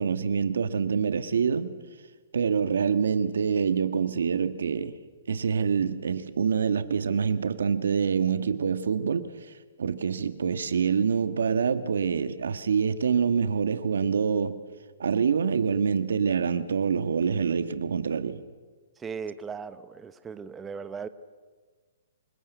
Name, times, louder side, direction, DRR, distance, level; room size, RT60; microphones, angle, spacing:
voice 1, 0.0-1.7 2.3-5.0 5.3-9.3 9.8-14.6 15.0-18.4, right 6 dB, 80° right, 1.5 m, -26 dB
voice 2, 19.0-21.1, right 6 dB, 15° right, 0.9 m, -37 dB
27.0 x 19.5 x 8.1 m
hypercardioid pair, 140°, 0 cm